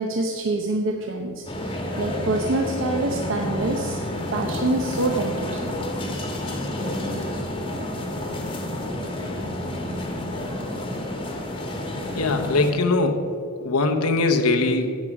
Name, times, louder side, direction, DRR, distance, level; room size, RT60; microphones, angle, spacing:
voice 1, 0.0-4.0 4.3-5.6, right 2 dB, 60° right, 2 dB, 0.8 m, -26 dB
sound 1, 1.5-12.7, left 1 dB, 20° left, 1.2 m, -29 dB
voice 2, 12.1-13.3 13.6-14.9, left 3 dB, 90° left, 6 dB, 1.0 m, -21 dB
10.5 x 8.5 x 4.8 m, 2.3 s
head